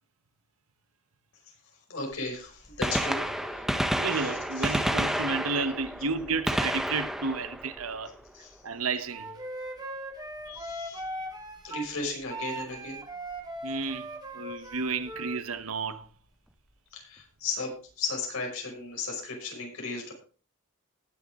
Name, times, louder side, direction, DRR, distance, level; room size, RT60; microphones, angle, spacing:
voice 1, 1.9-3.7 4.1-4.9 8.3-8.6 10.4-11.3 11.6-13.0 14.6-14.7 16.9-20.1, left 3 dB, 70° left, 5.6 m, -36 dB
Gunshot gunfire, 2.1-2.2 2.7-8.5 10.5-10.6 11.6-11.7 13.3-13.4 14.8-14.9 15.1-15.2, equal, ahead, 1.1 m, -30 dB
voice 2, 4.0-8.1 8.6-9.3 13.6-14.1 14.3-16.1, right 4 dB, 75° right, 1.1 m, -32 dB
Wind instrument woodwind instrument, 9.1-11.9 12.3-15.4, right 1 dB, 20° right, 2.2 m, -39 dB
20.0 x 7.0 x 3.7 m
head